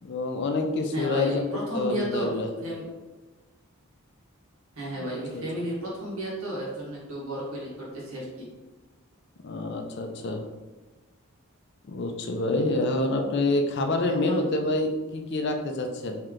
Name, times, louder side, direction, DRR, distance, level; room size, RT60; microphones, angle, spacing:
voice 1, 0.0-1.5 1.7-2.5 4.9-5.4 9.4-10.4 11.9-16.2, left 2 dB, 55° left, 5 dB, 0.4 m, -27 dB
voice 2, 0.9-2.3 2.6-2.9 4.7-8.5 14.0-14.5, equal, 80° right, -5 dB, 1.4 m, -33 dB
3.2 x 2.8 x 3.7 m, 1.2 s
head